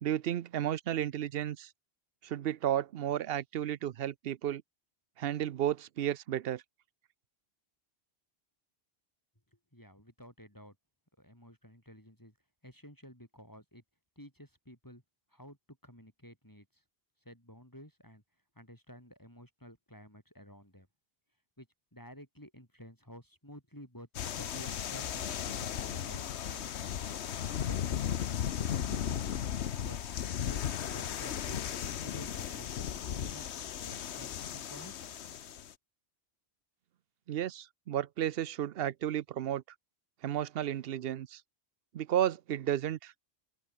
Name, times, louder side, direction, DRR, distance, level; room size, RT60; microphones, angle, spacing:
voice 1, 0.0-1.7 2.2-4.6 5.2-6.6 37.3-39.6 40.2-41.4 41.9-43.1, right 11 dB, 65° right, 0.8 m, -33 dB
voice 2, 9.7-10.8 11.2-12.3 12.6-13.8 14.2-15.0 15.3-15.6 15.8-16.8 17.2-18.2 18.5-20.9 21.6-24.1 24.4-27.0 28.7-29.3 29.8-30.0 30.4-33.5 33.8-35.1, equal, 20° left, 6.3 m, -52 dB
sound 1, 24.1-35.7, left 9 dB, 90° left, 1.1 m, -36 dB
open air
omnidirectional pair, 1.1 m